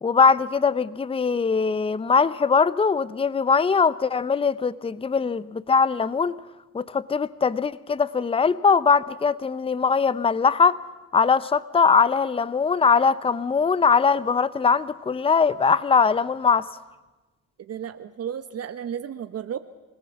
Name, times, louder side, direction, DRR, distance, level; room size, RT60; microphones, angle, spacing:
voice 1, 0.0-6.4 6.7-10.8 11.1-16.7, left 5 dB, 20° left, 18 dB, 0.7 m, -21 dB
voice 2, 17.6-19.6, right 8 dB, 55° right, 10 dB, 1.0 m, -33 dB
27.0 x 17.0 x 7.2 m, 1.2 s
cardioid pair, 90°, 30 cm